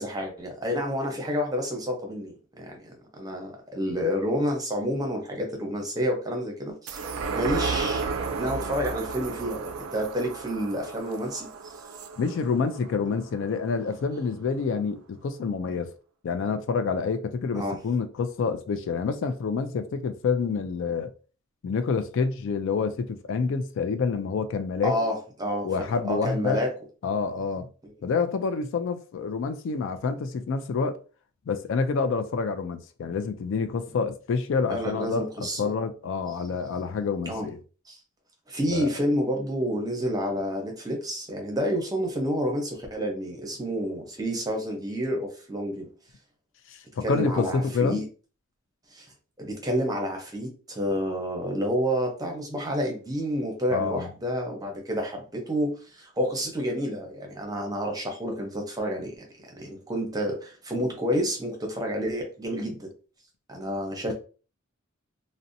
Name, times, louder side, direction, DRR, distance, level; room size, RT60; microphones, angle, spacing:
voice 1, 0.0-7.0 7.3-8.1 8.4-11.5 17.5-17.8 24.8-25.7 26.0-26.7 27.8-27.9 34.7-35.7 37.3-37.5 37.9-38.0 38.5-45.9 47.0-48.0 48.9-49.1 49.4-59.2 59.4-62.9 63.5-64.1, equal, 20° right, 0.7 m, -29 dB
sound 1, 6.9-13.7 14.1-14.2, right 4 dB, 80° right, 0.3 m, -33 dB
voice 2, 12.2-15.9 16.2-21.1 21.6-24.9 25.6-26.6 27.0-27.7 28.0-31.0 31.5-37.6 38.7-38.9 46.7-48.0 53.7-54.1, left 5 dB, 65° left, 0.3 m, -28 dB
2.6 x 2.1 x 2.6 m
head